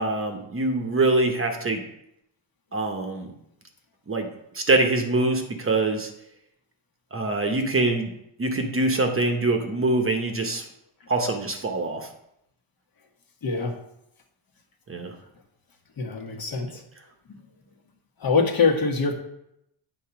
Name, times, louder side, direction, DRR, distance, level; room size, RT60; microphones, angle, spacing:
voice 1, 0.0-1.8 2.7-3.3 4.1-4.3 4.5-6.1 7.1-8.1 8.4-10.6 11.1-12.0 14.9-15.1, right 2 dB, 25° right, 4 dB, 1.0 m, -24 dB
voice 2, 13.4-13.7 16.0-16.8 18.2-19.1, left 4 dB, 45° left, 3 dB, 1.5 m, -23 dB
8.6 x 4.2 x 5.9 m, 0.79 s
cardioid pair, 130°, 48 cm